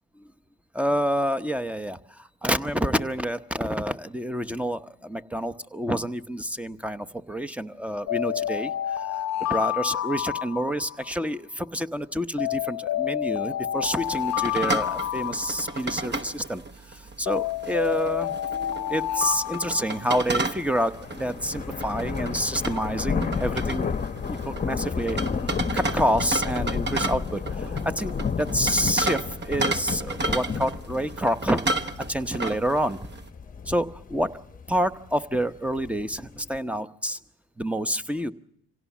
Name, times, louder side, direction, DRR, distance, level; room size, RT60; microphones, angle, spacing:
voice 1, 0.7-9.2 9.5-16.6 16.9-23.9 24.3-25.2 25.7-31.6 32.1-33.0 33.7-34.3 34.7-37.2 37.6-38.3, equal, 5° right, 11 dB, 0.8 m, -28 dB
sound 1, 8.1-11.3 12.4-16.1 17.3-20.5, left 12 dB, 65° left, 0.8 m, -29 dB
sound 2, 13.8-33.3, right 2 dB, 35° right, 1.2 m, -33 dB
sound 3, 20.6-36.6, left 6 dB, 30° left, 0.9 m, -32 dB
26.0 x 17.0 x 7.2 m, 0.75 s
cardioid pair, 90°, 30 cm